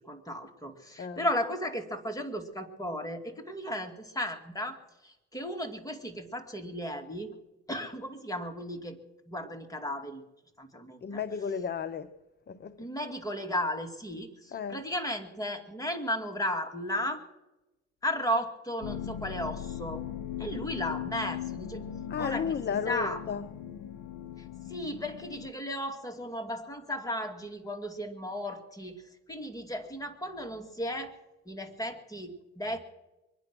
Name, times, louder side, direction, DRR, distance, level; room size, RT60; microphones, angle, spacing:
voice 1, 0.1-4.8 5.0-7.3 7.7-9.0 9.3-10.2 10.6-11.2 12.8-17.2 18.0-20.0 20.4-21.8 22.2-22.5 22.9-23.2 24.4-29.0 29.3-31.1 31.5-32.8, equal, 10° left, 4 dB, 2.5 m, -35 dB
voice 2, 11.0-12.1 12.5-12.9 14.5-14.8 22.1-23.5, left 6 dB, 35° left, 11 dB, 0.7 m, -33 dB
sound 1, 18.8-25.5, left 10 dB, 85° left, 0.8 m, -39 dB
23.5 x 9.8 x 6.1 m, 1.0 s
cardioid pair, 90°, 30 cm